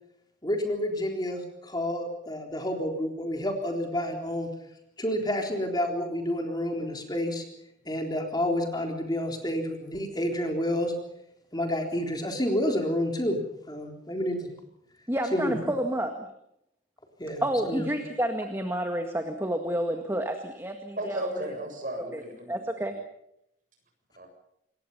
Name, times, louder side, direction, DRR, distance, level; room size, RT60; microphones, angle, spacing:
voice 1, 0.4-4.5 5.0-7.4 7.9-10.9 11.5-13.4 13.7-14.5 15.3-15.6 17.2-17.9, left 1 dB, 20° left, 3 dB, 3.8 m, -29 dB
voice 2, 15.1-16.3 17.4-21.3 22.1-22.2 22.5-22.9, right 1 dB, 15° right, 5 dB, 1.9 m, -29 dB
voice 3, 21.0-22.6 24.2-24.3, right 1 dB, 45° right, 4 dB, 7.6 m, -34 dB
27.5 x 22.0 x 5.7 m, 0.78 s
head